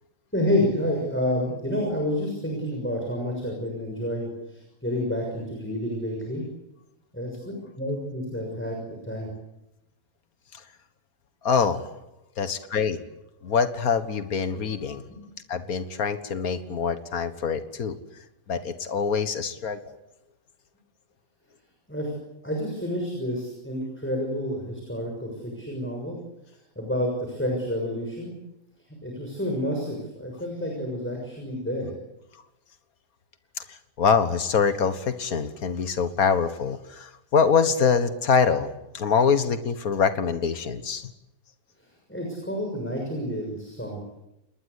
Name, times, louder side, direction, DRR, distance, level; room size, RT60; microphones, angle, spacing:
voice 1, 0.3-6.4 7.1-7.4 7.8-9.3 15.1-15.2 21.9-22.1 22.4-26.2 26.5-28.4 29.0-31.9 41.8-44.0, left 1 dB, 10° left, 1 dB, 6.5 m, -29 dB
voice 2, 11.4-11.8 12.4-13.0 13.4-15.0 15.5-18.0 18.5-19.9 34.0-38.7 38.9-41.1, left 6 dB, 85° left, 10 dB, 2.0 m, -24 dB
29.5 x 20.5 x 8.4 m, 0.91 s
omnidirectional pair, 1.5 m